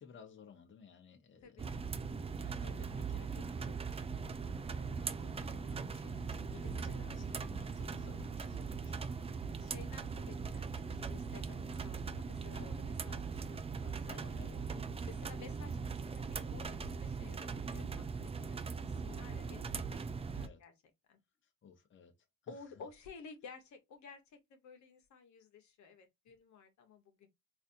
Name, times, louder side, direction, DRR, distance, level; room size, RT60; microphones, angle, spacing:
voice 1, 0.0-1.8 2.3-3.8 4.7-9.7 13.8-14.8 15.1-15.3 20.3-20.6 21.4-22.1 22.4-22.9, left 6 dB, 40° left, 0.9 m, -57 dB
voice 2, 1.4-1.7 4.3-4.6 6.6-7.1 9.6-14.2 15.0-18.6 18.8-19.8 20.1-20.7 21.1-21.2 22.5-27.3, left 5 dB, 70° left, 1.0 m, -55 dB
sound 1, 1.6-20.5, right 5 dB, 20° right, 0.4 m, -40 dB
4.1 x 2.6 x 2.6 m
cardioid pair, 90°, 30 cm